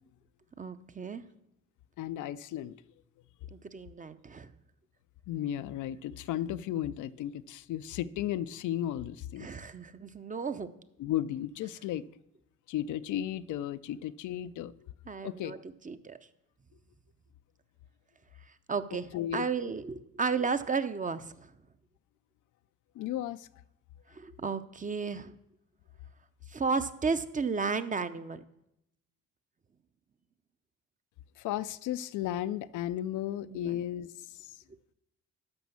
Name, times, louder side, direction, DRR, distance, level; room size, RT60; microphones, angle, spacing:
voice 1, 0.6-1.2 3.5-4.5 9.4-10.7 15.1-15.6 15.8-16.2 18.7-21.5 24.1-25.3 26.5-28.4 33.4-33.8, right 5 dB, 25° right, 0.7 m, -33 dB
voice 2, 2.0-2.8 5.3-9.5 11.0-12.1 12.7-14.9 15.2-15.6 19.1-19.4 22.9-23.5 31.4-34.5, left 12 dB, 80° left, 0.5 m, -34 dB
12.5 x 5.1 x 7.0 m
cardioid pair, 90°, 30 cm